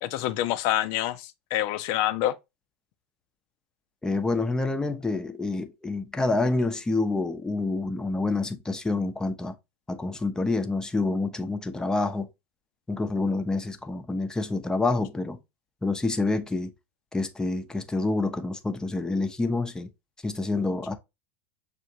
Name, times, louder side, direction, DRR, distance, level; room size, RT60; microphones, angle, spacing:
voice 1, 0.0-2.3, left 14 dB, 55° left, 0.5 m, -27 dB
voice 2, 4.0-9.5 9.9-12.3 12.9-15.4 15.8-16.7 17.1-19.9 20.2-21.0, left 3 dB, 10° left, 0.6 m, -27 dB
6.4 x 2.5 x 2.7 m
hypercardioid pair, 85°, 7 cm